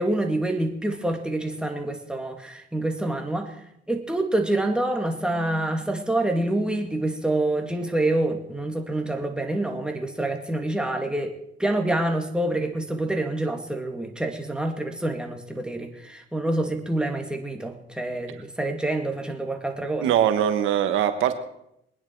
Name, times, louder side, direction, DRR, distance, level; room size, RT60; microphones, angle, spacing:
voice 1, 0.0-3.6 3.9-20.1, right 1 dB, 5° right, 3 dB, 2.2 m, -27 dB
voice 2, 20.0-21.4, right 10 dB, 85° right, 9 dB, 1.2 m, -21 dB
22.5 x 9.8 x 4.6 m, 0.78 s
cardioid pair, 90°, 20 cm